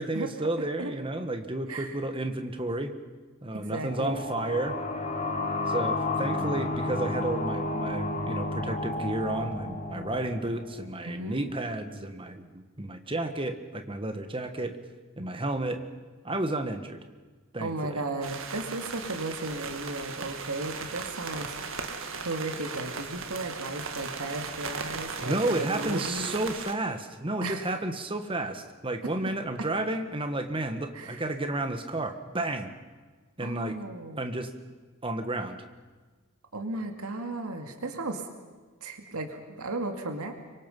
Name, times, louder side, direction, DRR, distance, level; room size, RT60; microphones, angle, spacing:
voice 1, 0.0-2.9 3.4-4.8 5.7-14.8 15.2-15.8 16.2-17.0 17.5-18.0 25.2-32.7 33.4-33.8 34.2-34.5 35.0-35.6, right 2 dB, 25° right, 7 dB, 1.5 m, -31 dB
voice 2, 1.7-2.0 3.5-4.3 11.0-11.5 17.6-21.8 22.2-26.3 27.4-27.7 30.9-31.2 33.4-34.3 36.5-38.3 38.8-40.3, right 2 dB, 85° right, 5 dB, 2.3 m, -35 dB
sound 1, 3.7-11.1, left 2 dB, 30° left, 2.2 m, -32 dB
sound 2, 18.2-26.7, right 5 dB, 60° right, 2.0 m, -37 dB
26.0 x 24.0 x 5.5 m, 1.4 s
head